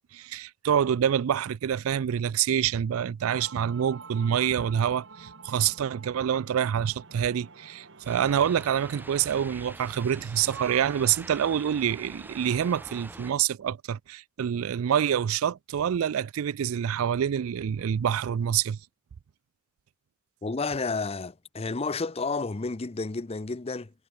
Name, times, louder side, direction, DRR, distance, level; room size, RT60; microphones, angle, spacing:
voice 1, 0.1-18.8, right 9 dB, 80° right, 0.4 m, -26 dB
sound 1, 3.2-9.1, right 4 dB, 60° right, 1.9 m, -48 dB
sound 2, 8.1-13.3, right 1 dB, 10° right, 4.5 m, -45 dB
voice 2, 20.4-23.9, left 3 dB, 30° left, 0.6 m, -31 dB
head